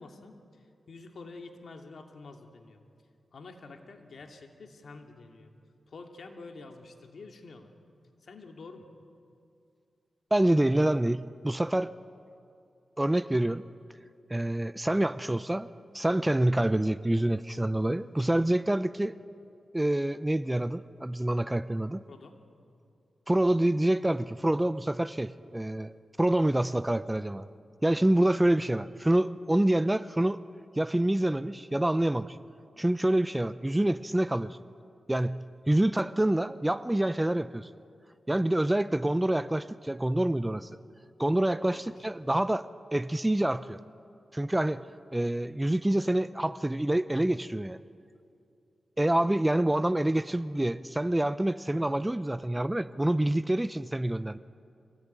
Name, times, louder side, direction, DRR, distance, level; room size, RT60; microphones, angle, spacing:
voice 1, 0.0-2.8 3.3-5.5 5.9-7.7 8.2-8.9 22.1-22.4 41.6-41.9, left 3 dB, 70° left, 4 dB, 2.6 m, -48 dB
voice 2, 10.3-11.9 13.0-13.6 14.3-15.7 15.9-19.2 19.7-22.0 23.3-25.9 26.2-27.5 27.8-30.4 30.8-32.4 32.8-34.6 35.1-37.7 38.3-40.7 41.2-43.8 44.3-44.8 45.1-47.8 49.0-54.4, right 1 dB, 15° right, 15 dB, 0.6 m, -27 dB
25.0 x 17.5 x 9.4 m, 2.5 s
cardioid pair, 60°, 0 cm